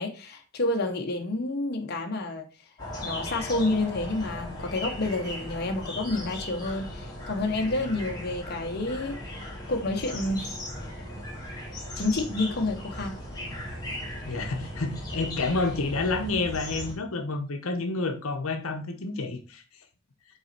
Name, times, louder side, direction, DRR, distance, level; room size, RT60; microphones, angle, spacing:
voice 1, 0.0-2.5 3.0-10.6 11.9-13.2, left 2 dB, 50° left, 0.9 m, -29 dB
sound 1, 2.8-16.9, left 1 dB, 20° left, 2.1 m, -37 dB
voice 2, 14.2-19.6, left 3 dB, 75° left, 0.9 m, -29 dB
5.5 x 4.1 x 4.3 m
head